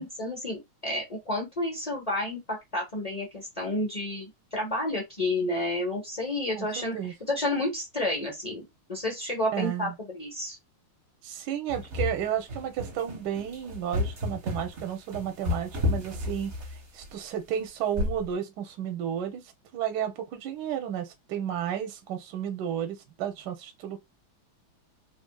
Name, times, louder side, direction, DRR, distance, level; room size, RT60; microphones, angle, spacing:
voice 1, 0.0-7.0 7.3-10.6, left 1 dB, 75° left, 0.3 m, -30 dB
voice 2, 6.5-7.1 9.5-9.9 11.2-16.5 16.9-19.4 19.7-24.0, right 9 dB, 65° right, 1.2 m, -32 dB
sound 1, 11.7-17.0 18.0-18.3, left 2 dB, 40° right, 1.1 m, -31 dB
3.4 x 2.6 x 2.2 m
omnidirectional pair, 2.3 m